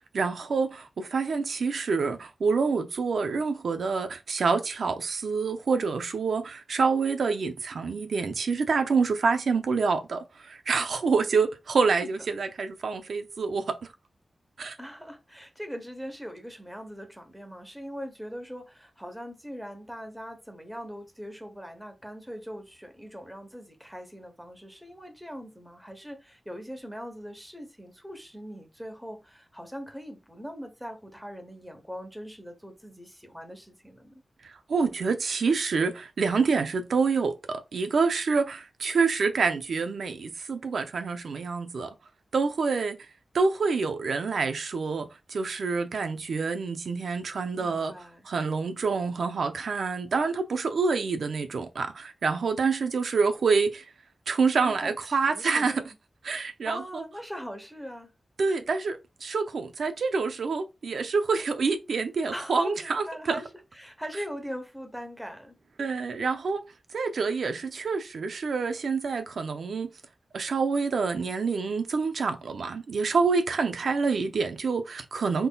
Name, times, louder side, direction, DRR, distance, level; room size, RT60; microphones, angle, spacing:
voice 1, 0.1-13.8 14.6-14.8 34.4-41.9 42.3-43.1 43.3-47.9 48.3-53.9 54.3-55.8 56.2-57.0 58.4-63.4 65.8-66.7 66.9-69.9 70.3-75.5, right 4 dB, 85° right, 0.5 m, -27 dB
voice 2, 14.8-34.2 47.5-48.3 54.6-55.0 55.2-55.9 56.6-58.1 62.3-65.6, equal, ahead, 0.9 m, -41 dB
3.9 x 3.7 x 2.2 m
wide cardioid pair, 130°, 0 cm